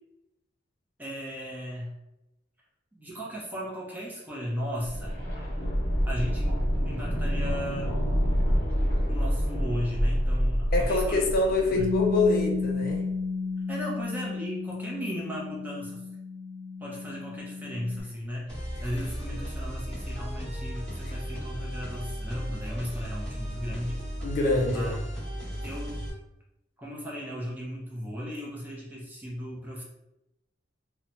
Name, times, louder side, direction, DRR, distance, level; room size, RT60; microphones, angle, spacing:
voice 1, 1.0-1.9 2.9-5.2 6.1-6.6 6.8-7.9 9.1-11.9 13.7-16.0 16.8-24.0 24.6-24.9 25.6-26.0 26.8-29.8, equal, 10° right, -4 dB, 0.6 m, -36 dB
sound 1, 4.8-12.6 12.9-13.0, equal, 30° left, 1.1 m, -27 dB
voice 2, 10.7-13.0 19.3-19.4 21.0-21.1 24.2-25.0, left 2 dB, 50° left, 1 dB, 0.4 m, -26 dB
Bass guitar, 11.8-18.0, left 4 dB, 70° right, 0.5 m, -33 dB
sound 2, 18.5-26.1, equal, 5° left, 1.1 m, -35 dB
2.9 x 2.1 x 2.7 m, 0.92 s
head